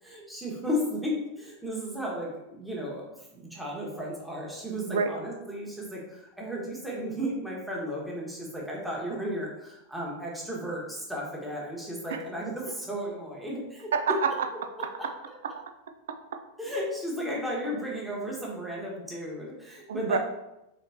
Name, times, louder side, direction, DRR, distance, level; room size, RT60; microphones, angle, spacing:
voice 1, 0.0-13.9 15.0-15.1 16.6-20.2, equal, ahead, -4 dB, 1.3 m, -34 dB
voice 2, 13.9-14.5 14.8-15.1 15.4-15.6 16.1-16.4 19.9-20.2, right 6 dB, 60° right, 8 dB, 0.4 m, -28 dB
4.3 x 3.8 x 2.7 m, 0.91 s
figure-of-eight pair, 90°, 0 cm